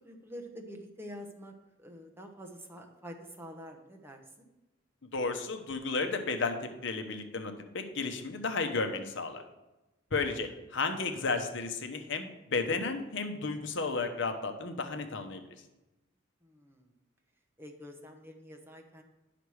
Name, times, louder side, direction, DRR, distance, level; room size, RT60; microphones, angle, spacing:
voice 1, 0.0-1.5 1.8-4.5 16.4-16.9 17.6-19.0, equal, 10° right, 2 dB, 0.9 m, -47 dB
voice 2, 5.1-9.4 10.1-15.4, left 4 dB, 65° left, 7 dB, 0.9 m, -33 dB
9.8 x 5.9 x 4.8 m, 1.0 s
head